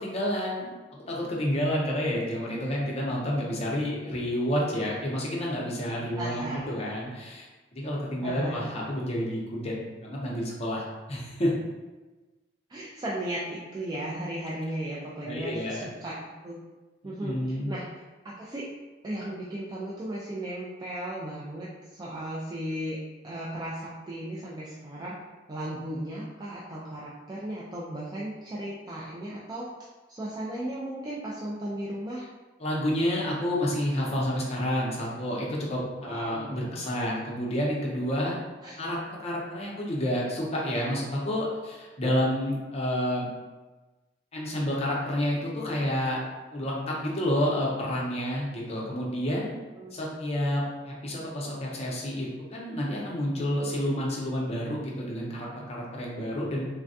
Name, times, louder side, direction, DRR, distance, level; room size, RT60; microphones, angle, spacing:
voice 1, 0.0-9.7 10.0-11.5 14.9-15.0 15.2-15.9 17.0-17.7 32.6-38.4 38.8-43.3 44.3-46.2 46.5-49.5 49.9-56.6, equal, 35° left, -4 dB, 0.6 m, -29 dB
voice 2, 6.2-6.7 8.2-8.7 12.7-16.2 16.4-16.6 17.0-17.4 17.7-18.6 19.0-23.0 23.2-25.2 25.5-29.7 30.2-32.3 36.0-36.7 38.6-38.8 49.8-49.9, right 1 dB, 20° right, -6 dB, 0.3 m, -36 dB
3.3 x 2.2 x 2.6 m, 1.2 s
head